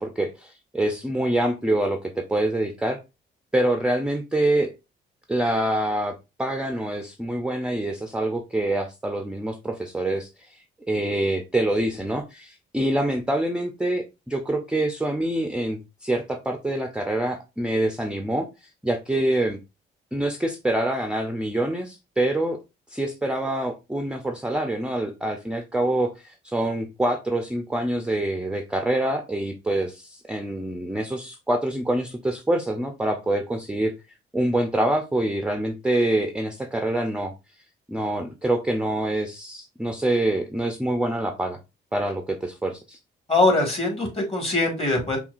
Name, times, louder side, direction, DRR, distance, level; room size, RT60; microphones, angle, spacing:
voice 1, 0.0-3.0 3.5-4.7 5.3-6.1 6.4-18.5 18.8-19.6 20.1-22.6 22.9-33.9 34.3-37.3 37.9-41.6 41.9-43.0, right 1 dB, 5° right, 4 dB, 0.5 m, -25 dB
voice 2, 43.3-45.2, left 2 dB, 30° left, 1 dB, 1.8 m, -22 dB
5.8 x 2.3 x 2.5 m, 0.26 s
cardioid pair, 90°, 20 cm